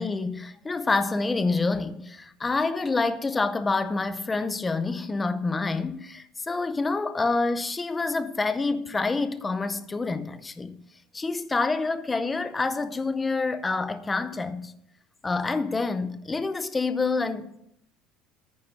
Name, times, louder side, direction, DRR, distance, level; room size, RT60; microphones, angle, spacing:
voice 1, 0.0-10.8 11.1-14.7 15.2-17.6, left 3 dB, 15° left, 0.6 m, -27 dB
9.7 x 6.5 x 8.2 m
cardioid pair, 170°, 0 cm